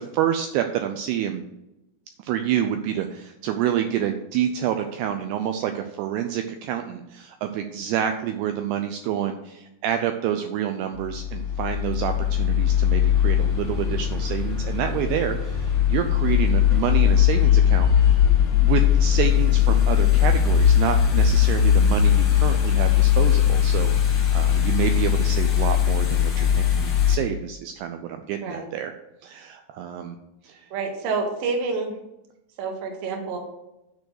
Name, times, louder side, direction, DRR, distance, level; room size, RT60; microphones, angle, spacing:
voice 1, 0.0-1.4 2.2-17.9 18.6-28.9 29.2-30.2 30.4-30.7, right 10 dB, 85° right, 6 dB, 2.4 m, -28 dB
sound 1, 11.0-27.2, left 9 dB, 65° left, 1.1 m, -20 dB
voice 2, 30.7-31.9 32.6-33.4, right 4 dB, 60° right, 2 dB, 1.7 m, -28 dB
10.5 x 4.6 x 6.5 m, 0.91 s
omnidirectional pair, 5.1 m